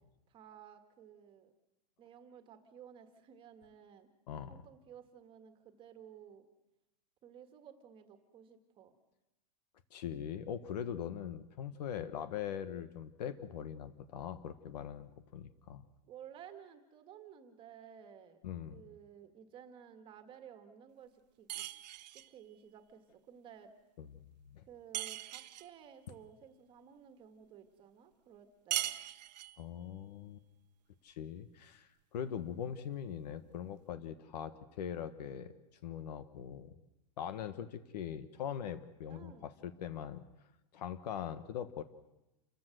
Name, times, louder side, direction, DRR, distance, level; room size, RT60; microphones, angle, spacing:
voice 1, 0.3-1.5 2.0-4.1 4.5-6.4 7.2-9.0 16.1-18.4 18.7-21.7 22.1-23.7 24.7-29.0 39.1-39.5, right 8 dB, 25° right, 8 dB, 1.8 m, -55 dB
voice 2, 4.3-4.6 9.9-15.8 18.4-18.8 24.0-24.1 24.5-24.6 29.6-30.4 31.0-35.5 35.8-36.7 37.2-40.2 40.7-41.8, left 9 dB, 75° left, 12 dB, 1.4 m, -41 dB
sound 1, 21.5-22.3 24.9-25.7 28.7-29.6, right 13 dB, 85° right, 1.1 m, -39 dB
28.5 x 14.5 x 7.8 m, 0.96 s
supercardioid pair, 165°, 21 cm